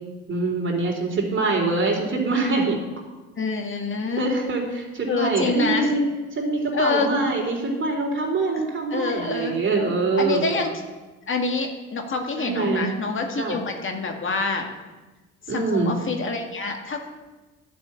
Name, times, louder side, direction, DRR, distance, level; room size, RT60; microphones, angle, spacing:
voice 1, 0.3-2.8 4.2-6.0 6.4-10.5 12.4-12.9 13.4-13.6 15.5-16.0, right 3 dB, 40° right, 0 dB, 3.7 m, -24 dB
voice 2, 3.4-4.3 5.1-5.9 6.7-7.1 8.5-8.6 8.9-9.6 10.2-10.7 11.3-14.7 15.5-17.1, left 4 dB, 40° left, 3 dB, 1.9 m, -26 dB
11.0 x 6.1 x 8.8 m, 1.2 s
supercardioid pair, 70°, 30 cm